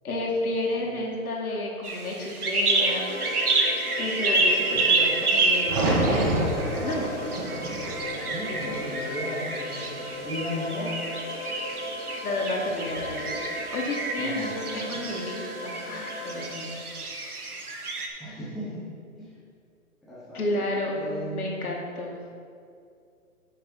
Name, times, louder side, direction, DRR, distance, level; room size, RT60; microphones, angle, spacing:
voice 1, 0.0-3.2 4.0-5.9 6.8-7.2 12.2-13.4 13.7-16.8 20.3-22.2, left 1 dB, 75° left, -1 dB, 2.1 m, -31 dB
sound 1, 1.8-18.1, right 3 dB, 90° right, 1.3 m, -29 dB
sound 2, 2.7-16.4, left 1 dB, 45° left, 1.7 m, -37 dB
sound 3, 5.7-9.7 10.1-10.8 12.7-13.2, right 1 dB, 25° right, 1.7 m, -29 dB
voice 2, 8.2-11.0 14.2-15.1 18.2-19.4 20.0-21.5, left 1 dB, ahead, -10 dB, 0.6 m, -36 dB
8.1 x 6.0 x 4.6 m, 2.4 s
hypercardioid pair, 140°, 44 cm